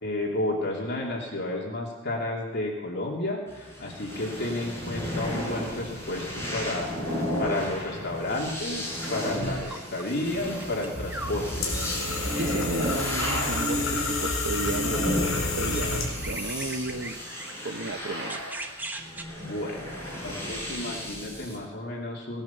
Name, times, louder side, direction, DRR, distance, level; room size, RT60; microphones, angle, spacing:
voice 1, 0.0-11.6 12.3-12.8 19.4-22.4, left 2 dB, 55° left, -2 dB, 3.1 m, -32 dB
sound 1, 3.5-21.6, equal, 15° left, 4.7 m, -34 dB
sound 2, 9.0-10.2 10.5-12.5 14.1-19.2, right 1 dB, 10° right, 1.1 m, -42 dB
sound 3, 11.0-16.3, left 2 dB, 75° left, 5.2 m, -29 dB
voice 2, 12.4-17.1 17.6-18.4, right 3 dB, 60° right, 2 dB, 0.9 m, -34 dB
18.5 x 10.5 x 7.2 m, 1.0 s
head